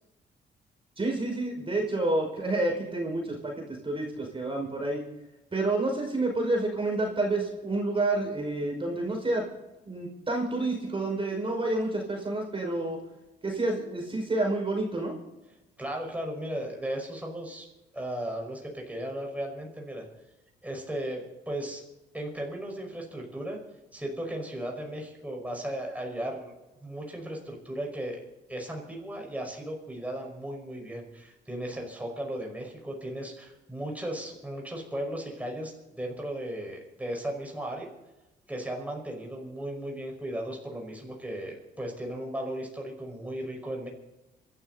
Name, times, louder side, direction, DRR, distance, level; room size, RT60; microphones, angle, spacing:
voice 1, 1.0-5.0 5.5-9.5 9.9-13.0 13.4-15.2, right 2 dB, 25° right, 1 dB, 5.3 m, -29 dB
voice 2, 15.8-17.7 17.9-20.1 20.6-21.2 21.5-21.8 22.1-23.6 23.9-26.5 26.8-28.2 28.5-37.9 38.5-43.9, right 1 dB, 5° right, 0 dB, 5.4 m, -36 dB
27.0 x 12.5 x 4.1 m, 0.98 s
cardioid pair, 90°, 20 cm